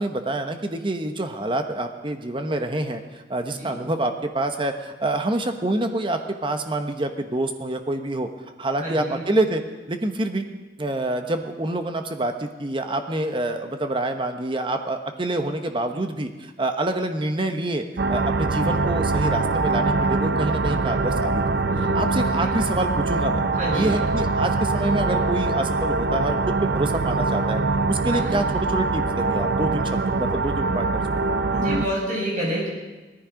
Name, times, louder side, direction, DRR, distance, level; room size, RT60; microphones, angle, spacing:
voice 1, 0.0-8.3 8.6-9.6 9.9-10.5 10.8-17.8 18.1-23.4 23.7-27.6 27.9-31.0, right 1 dB, 30° right, 6 dB, 1.1 m, -27 dB
voice 2, 8.8-9.2 21.7-22.6 23.6-23.9 28.1-28.4 31.5-32.7, equal, 45° right, -3 dB, 6.4 m, -29 dB
sound 1, 18.0-31.9, right 3 dB, 70° right, 0.6 m, -23 dB
18.0 x 14.0 x 5.1 m, 1.2 s
head